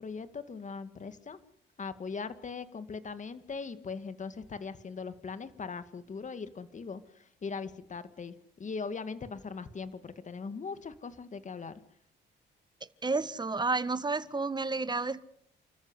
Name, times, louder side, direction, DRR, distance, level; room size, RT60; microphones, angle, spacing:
voice 1, 0.0-1.4 1.8-11.7, left 5 dB, 40° left, 2.2 m, -40 dB
voice 2, 13.0-15.2, right 3 dB, 20° right, 1.5 m, -31 dB
29.5 x 14.0 x 8.3 m
cardioid pair, 90°, 20 cm